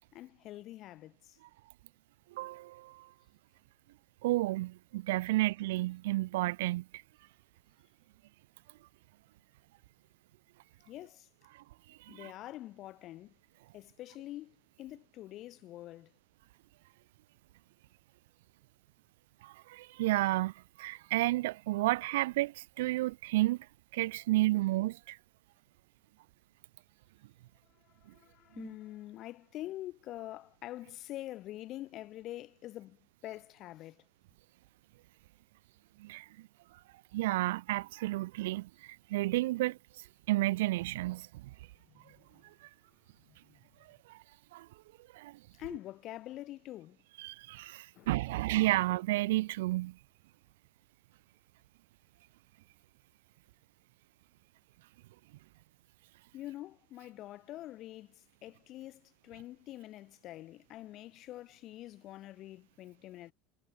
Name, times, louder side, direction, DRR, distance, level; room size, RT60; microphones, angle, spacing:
voice 1, 0.1-1.4 10.9-11.3 12.1-13.3 13.7-16.1 28.0-34.0 41.9-42.4 43.3-43.6 45.6-47.0 47.9-48.4 56.3-63.3, left 15 dB, 50° left, 2.3 m, -46 dB
voice 2, 2.4-2.9 4.2-6.8 19.4-20.5 20.8-23.6 23.9-25.2 36.0-36.2 37.1-38.7 39.1-39.8 40.3-41.3 44.5-44.7 45.2-45.3 47.2-49.9, right 18 dB, 85° right, 0.9 m, -31 dB
supercardioid pair, 125°, 0 cm